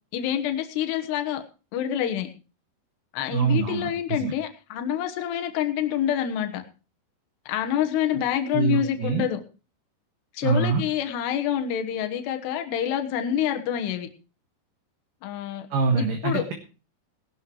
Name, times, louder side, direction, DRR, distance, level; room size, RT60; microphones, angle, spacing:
voice 1, 0.1-1.4 1.7-2.3 3.1-6.6 7.5-9.4 10.3-14.1 15.2-15.7 15.9-16.5, left 10 dB, 70° left, 6 dB, 3.2 m, -27 dB
voice 2, 3.3-4.3 8.5-9.2 10.4-10.8 15.7-16.5, right 5 dB, 60° right, 3 dB, 2.6 m, -24 dB
19.0 x 12.0 x 3.1 m, 0.34 s
omnidirectional pair, 5.3 m